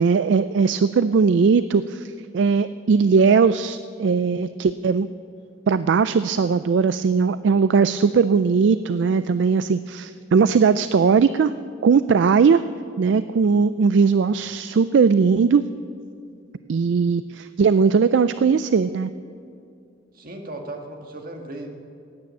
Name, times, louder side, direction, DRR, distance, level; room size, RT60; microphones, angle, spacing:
voice 1, 0.0-5.1 5.7-11.5 11.8-12.6 13.0-15.7 16.7-19.1, right 5 dB, 65° right, 14 dB, 0.4 m, -19 dB
voice 2, 20.1-21.7, right 2 dB, 50° right, 3 dB, 1.8 m, -36 dB
17.0 x 9.6 x 8.4 m, 2.5 s
head